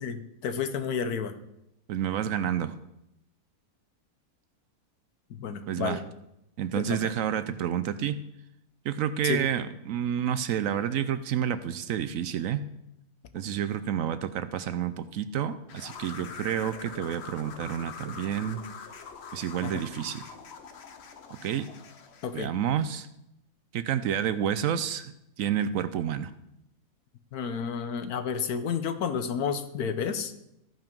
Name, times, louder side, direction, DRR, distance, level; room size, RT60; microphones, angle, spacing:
voice 1, 0.0-1.3 5.3-6.0 6.7-7.0 9.2-9.4 19.6-19.7 22.2-22.5 27.3-30.3, left 6 dB, 80° left, 10 dB, 1.3 m, -31 dB
voice 2, 1.9-2.8 5.7-6.0 6.6-8.2 8.8-12.6 13.3-18.6 19.3-20.3 21.4-21.7 22.3-23.1 23.7-25.1 25.4-26.3, right 9 dB, 70° right, 12 dB, 0.9 m, -29 dB
sound 1, 15.7-22.4, left 6 dB, 50° left, 1.0 m, -44 dB
14.0 x 5.7 x 5.2 m, 0.82 s
omnidirectional pair, 1.6 m